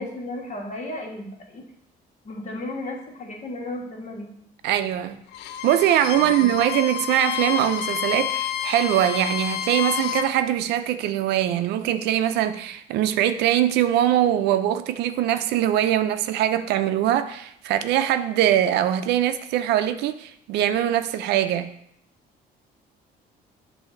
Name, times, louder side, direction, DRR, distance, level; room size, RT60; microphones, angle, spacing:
voice 1, 0.0-1.6 2.2-4.4 6.0-6.5, left 1 dB, 40° left, 1.6 m, -34 dB
voice 2, 4.6-5.2 5.6-21.7, right 11 dB, 80° right, 0.5 m, -22 dB
Bowed string instrument, 5.3-10.3, left 11 dB, 85° left, 0.4 m, -29 dB
7.5 x 2.7 x 5.7 m
cardioid pair, 110°, 17 cm